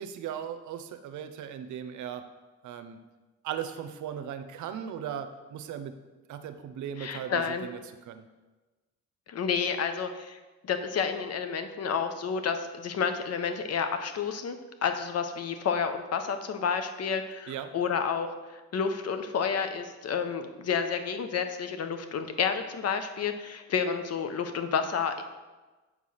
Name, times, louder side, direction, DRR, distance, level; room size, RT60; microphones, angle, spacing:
voice 1, 0.0-2.3 2.6-3.0 3.4-6.0 6.3-8.3 17.5-17.8, right 9 dB, 75° right, 9 dB, 0.7 m, -38 dB
voice 2, 7.0-7.6 9.3-18.3 18.5-25.2, left 6 dB, 55° left, 8 dB, 0.9 m, -30 dB
7.3 x 4.8 x 5.6 m, 1.2 s
cardioid pair, 90°, 30 cm